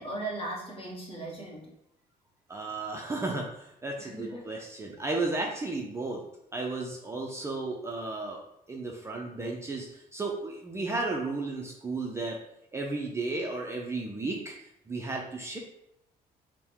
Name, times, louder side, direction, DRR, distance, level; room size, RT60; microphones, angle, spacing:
voice 1, 0.0-1.6 4.0-4.5, right 2 dB, 35° left, -3 dB, 1.2 m, -37 dB
voice 2, 2.5-6.2 6.5-8.4 8.7-12.4 12.7-15.6, right 3 dB, 15° right, -1 dB, 0.4 m, -34 dB
3.4 x 2.1 x 4.4 m, 0.80 s
cardioid pair, 110°, 17 cm